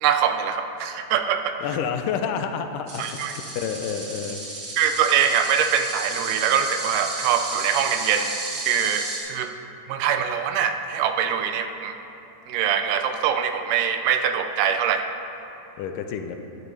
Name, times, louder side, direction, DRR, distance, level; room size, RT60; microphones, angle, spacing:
voice 1, 0.0-1.6 3.0-3.3 4.8-8.4 8.7-9.5 9.9-12.0 12.5-15.1, right 8 dB, 80° right, 7 dB, 2.1 m, -23 dB
voice 2, 1.6-4.4 15.8-16.4, left 7 dB, 85° left, 7 dB, 2.2 m, -29 dB
sound 1, 2.9-9.2, right 3 dB, 45° right, 2.2 m, -33 dB
12.5 x 9.2 x 3.3 m, 2.8 s
omnidirectional pair, 3.7 m